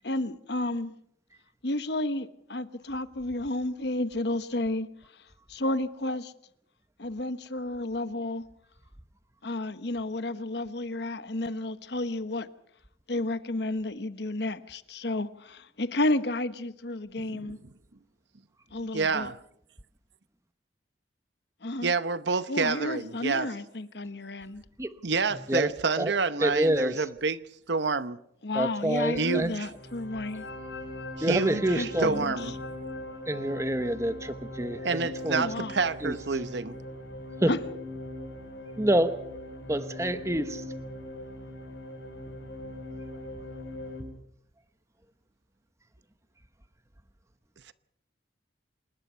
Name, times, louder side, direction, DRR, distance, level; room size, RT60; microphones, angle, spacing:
voice 1, 0.0-1.0 1.6-4.9 5.5-6.3 7.0-8.5 9.4-12.5 13.1-17.6 18.7-19.3 21.6-21.9 22.5-24.6 28.4-30.4 31.7-32.5 35.3-35.8 37.5-37.6, left 2 dB, 60° left, 1.1 m, -31 dB
voice 2, 17.2-17.6 18.9-19.3 21.8-23.5 25.0-27.4 27.7-28.2 29.2-29.7 31.2-32.5 34.8-36.8, right 4 dB, 65° right, 0.9 m, -28 dB
voice 3, 26.4-27.0 28.6-29.5 31.2-32.3 33.3-35.4 36.0-36.1 37.4-37.5 38.8-39.2 39.7-40.6, right 1 dB, 15° right, 1.0 m, -27 dB
sound 1, 29.7-44.0, left 1 dB, 90° left, 6.3 m, -40 dB
27.0 x 20.0 x 5.7 m
head